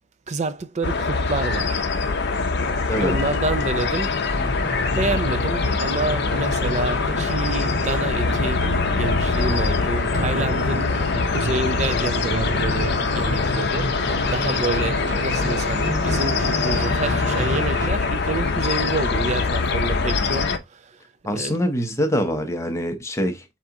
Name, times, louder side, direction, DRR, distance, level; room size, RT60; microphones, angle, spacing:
voice 1, 0.3-1.8 3.0-4.1 5.0-8.7 8.9-21.0 21.3-21.5, right 3 dB, 35° right, 0.5 m, -28 dB
sound 1, 0.8-20.6, left 4 dB, 60° left, 0.6 m, -23 dB
voice 2, 2.9-3.2 20.5-20.6 21.2-23.4, equal, 15° left, 0.7 m, -24 dB
sound 2, 4.3-17.9, equal, 65° right, 1.5 m, -30 dB
4.7 x 2.9 x 3.6 m
head